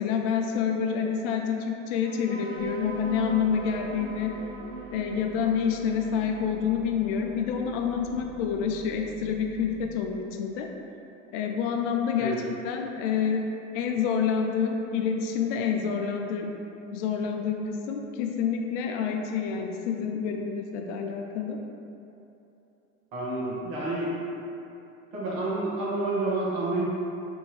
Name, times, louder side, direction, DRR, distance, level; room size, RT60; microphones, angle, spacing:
voice 1, 0.0-4.3 4.9-10.7 11.3-13.5 13.7-16.5 16.9-21.6, left 7 dB, 60° left, 3 dB, 0.5 m, -28 dB
sound 1, 2.0-9.0, right 3 dB, 90° right, 0.9 m, -42 dB
sound 2, 2.6-10.0, right 1 dB, 20° right, 1.4 m, -47 dB
voice 2, 23.1-24.2 25.1-26.8, right 2 dB, 65° right, -7 dB, 1.4 m, -29 dB
3.5 x 2.6 x 3.1 m, 2.8 s
hypercardioid pair, 85°, 43 cm